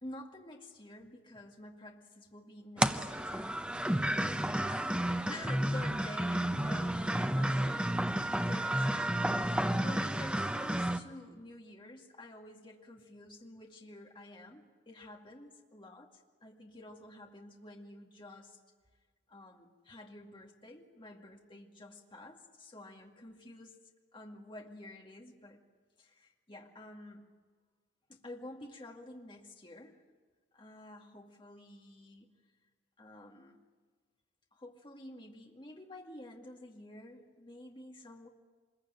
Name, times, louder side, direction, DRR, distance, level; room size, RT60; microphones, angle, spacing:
voice 1, 0.0-3.6 4.0-7.9 8.5-18.6 19.3-23.8 24.1-25.6 26.0-27.3 28.1-30.0 30.5-32.3 33.0-33.6 34.5-38.3, left 1 dB, 25° left, 1 dB, 2.2 m, -50 dB
sound 1, 2.8-11.0, right 1 dB, 5° right, 0.8 m, -31 dB
25.5 x 22.0 x 9.2 m, 1.5 s
head